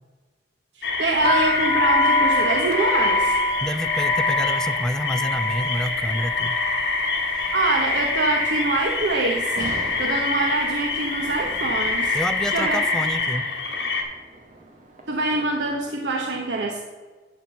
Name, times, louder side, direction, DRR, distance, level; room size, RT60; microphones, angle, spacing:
sound 1, 0.8-14.0, left 3 dB, 70° left, 1.7 m, -25 dB
voice 1, 0.8-3.3 7.3-12.1 12.5-12.9 15.1-16.8, right 3 dB, 90° right, 1 dB, 1.0 m, -25 dB
sound 2, 1.2-9.1 9.4-10.0 10.7-11.0 11.2-12.7, left 2 dB, 35° left, 0.8 m, -27 dB
voice 2, 3.6-6.6 12.1-13.5, equal, 5° left, 11 dB, 0.4 m, -28 dB
sound 3, 9.5-15.9, right 2 dB, 45° right, 1.7 m, -43 dB
11.5 x 4.4 x 6.9 m, 1.4 s
head